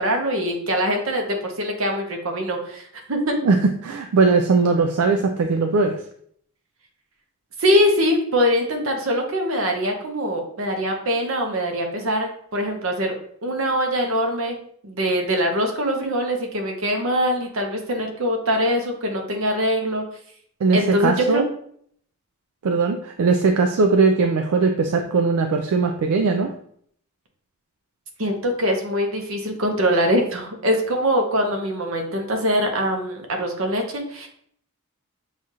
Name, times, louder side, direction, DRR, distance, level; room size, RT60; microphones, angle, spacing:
voice 1, 0.0-3.4 7.6-13.2 13.4-20.0 20.7-21.4 28.2-34.3, equal, 65° right, 3 dB, 0.8 m, -23 dB
voice 2, 3.8-6.0 20.6-21.5 22.6-26.5, right 4 dB, 80° right, 4 dB, 0.4 m, -19 dB
6.3 x 2.4 x 2.8 m, 0.64 s
head